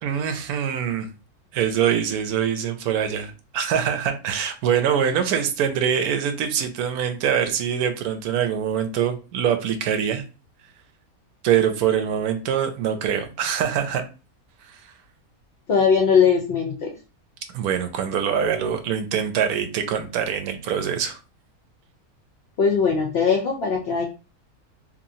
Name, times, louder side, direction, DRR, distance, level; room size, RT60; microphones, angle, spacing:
voice 1, 0.0-1.1 1.5-10.2 11.4-14.0 17.5-21.2, right 8 dB, 85° right, 7 dB, 1.1 m, -24 dB
voice 2, 15.7-16.9 22.6-24.0, left 6 dB, 65° left, 1 dB, 0.6 m, -20 dB
3.0 x 2.5 x 2.6 m, 0.33 s
omnidirectional pair, 1.6 m